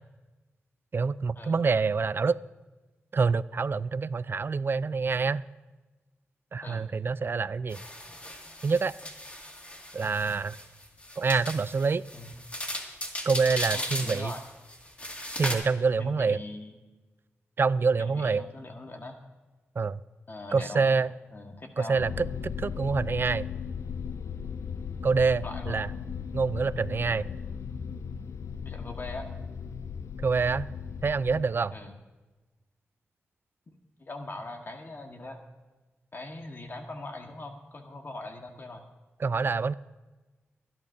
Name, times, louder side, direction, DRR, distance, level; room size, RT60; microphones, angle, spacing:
voice 1, 0.9-2.4 3.1-5.4 6.5-7.8 8.6-8.9 9.9-10.6 11.2-12.0 13.3-14.3 15.4-16.4 17.6-18.4 19.8-20.0 20.5-21.1 21.8-22.3 22.6-23.5 25.0-25.9 26.3-27.3 30.2-30.7 31.0-31.7 39.2-39.7, right 4 dB, 50° right, 18 dB, 0.4 m, -26 dB
sound 1, 7.7-15.5, left 1 dB, 30° left, 2.1 m, -37 dB
voice 2, 13.7-14.4 16.0-16.8 18.0-19.2 20.3-21.0 21.3-22.0 25.4-25.9 28.6-29.3 31.7-31.9 34.0-35.4 36.1-38.9, left 2 dB, 50° left, 3 dB, 1.6 m, -41 dB
sound 2, 22.0-31.4, left 7 dB, 75° left, 0.4 m, -37 dB
24.5 x 11.0 x 2.7 m, 1.2 s
cardioid pair, 55°, 5 cm